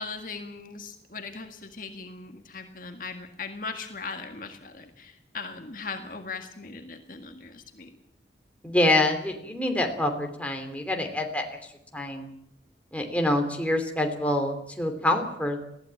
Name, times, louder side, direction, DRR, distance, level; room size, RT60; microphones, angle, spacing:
voice 1, 0.0-8.0, left 4 dB, 50° left, 5 dB, 1.9 m, -39 dB
voice 2, 8.6-11.6 11.9-12.3 12.9-15.6, left 1 dB, 10° left, 3 dB, 2.8 m, -26 dB
20.5 x 15.5 x 8.9 m, 0.77 s
head